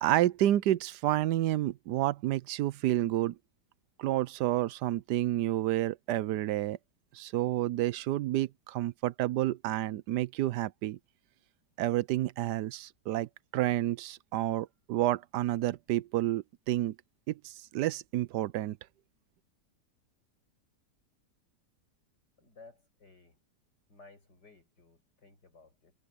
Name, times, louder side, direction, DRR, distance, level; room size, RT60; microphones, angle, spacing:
voice 1, 0.0-3.4 4.0-6.8 7.1-11.0 11.8-16.9 17.3-18.8, right 14 dB, 85° right, 1.2 m, -30 dB
voice 2, 22.4-23.4 23.9-25.9, left 3 dB, 90° left, 7.4 m, -57 dB
omnidirectional pair, 1.8 m